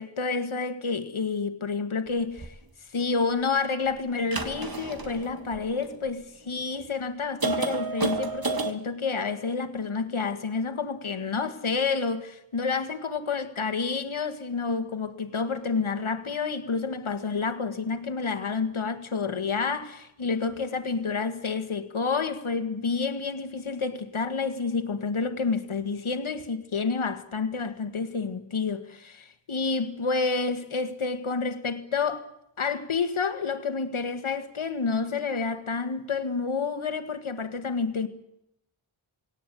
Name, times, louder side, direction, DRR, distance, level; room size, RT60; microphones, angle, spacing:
voice 1, 0.0-2.6 2.9-32.3 32.6-38.1, left 4 dB, 85° left, 1.8 m, -29 dB
sound 1, 2.4-2.5 4.2-6.1 6.7-6.8 7.4-8.7, right 3 dB, 45° right, 2.0 m, -31 dB
21.0 x 17.5 x 9.2 m
wide cardioid pair, 55°, 48 cm